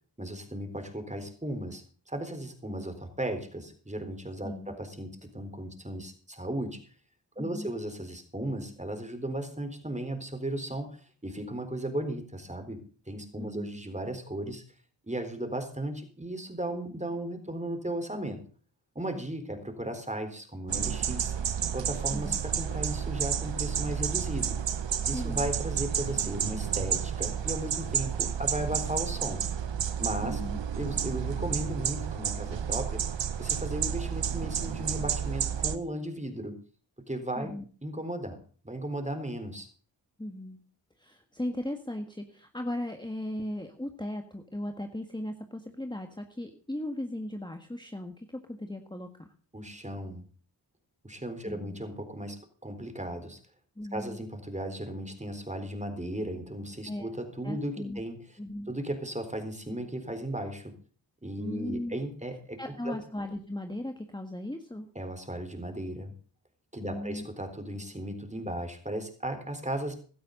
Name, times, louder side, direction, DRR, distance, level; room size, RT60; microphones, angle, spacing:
voice 1, 0.2-6.8 7.4-11.0 11.2-12.8 13.1-14.6 15.1-18.4 19.0-21.3 21.7-24.6 25.1-29.4 30.0-30.4 30.8-33.0 33.4-36.5 37.1-37.5 37.8-38.4 38.6-39.7 49.5-50.2 51.0-53.4 53.9-58.2 58.7-60.7 61.2-63.0 65.0-66.1 66.7-70.0, right 1 dB, 15° right, 7 dB, 4.0 m, -36 dB
voice 2, 4.4-4.7 7.4-7.7 13.4-13.7 22.1-22.4 25.1-25.5 30.2-30.6 37.4-37.6 40.2-40.6 41.0-49.3 51.4-51.8 53.7-54.2 56.9-57.1 57.4-58.0 58.4-58.7 61.4-62.0 62.6-64.9 66.8-67.3, left 1 dB, 10° left, 5 dB, 1.7 m, -37 dB
sound 1, 20.7-35.8, right 8 dB, 80° right, 1.0 m, -31 dB
16.5 x 12.5 x 3.9 m, 0.42 s
cardioid pair, 50°, 44 cm